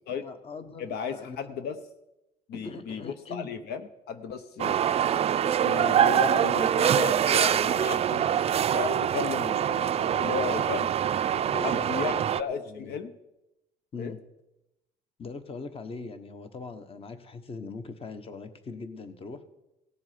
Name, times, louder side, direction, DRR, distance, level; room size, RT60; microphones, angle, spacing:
voice 1, 0.2-1.4 2.5-3.5 11.5-13.0 13.9-14.2 15.2-19.5, left 4 dB, 35° left, 10 dB, 1.2 m, -41 dB
voice 2, 0.8-1.8 2.5-4.8 5.6-8.3 8.7-10.9 11.3-13.2 14.0-14.2, left 6 dB, 75° left, 10 dB, 0.9 m, -34 dB
sound 1, 4.6-12.4, right 9 dB, 35° right, 0.4 m, -24 dB
17.5 x 7.1 x 5.1 m, 0.92 s
cardioid pair, 110°, 17 cm